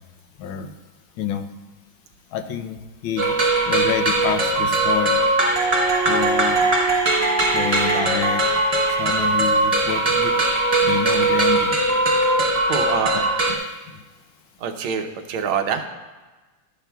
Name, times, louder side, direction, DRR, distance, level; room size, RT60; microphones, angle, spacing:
voice 1, 1.2-1.5 2.3-3.4 3.7-5.2 6.1-6.7 7.5-8.4 9.0-10.3 10.8-11.8 13.1-13.2 13.5-13.6, left 9 dB, 80° left, 7 dB, 1.5 m, -27 dB
sound 1, 3.2-13.5, right 2 dB, 45° right, 0.4 m, -20 dB
voice 2, 12.6-13.2 14.6-15.8, right 7 dB, 80° right, 6 dB, 1.6 m, -25 dB
13.0 x 10.0 x 2.3 m, 1.2 s
omnidirectional pair, 2.3 m